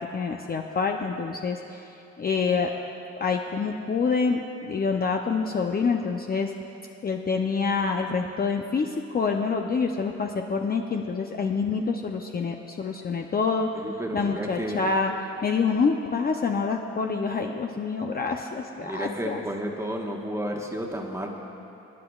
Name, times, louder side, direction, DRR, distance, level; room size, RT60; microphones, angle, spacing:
voice 1, 0.0-2.7 3.2-6.5 7.0-13.8 14.1-15.1 15.4-19.4, left 5 dB, 30° left, 2 dB, 0.6 m, -27 dB
voice 2, 13.7-14.9 18.8-21.3, equal, 10° right, 0 dB, 1.3 m, -32 dB
26.0 x 9.7 x 2.4 m, 2.8 s
cardioid pair, 90°, 30 cm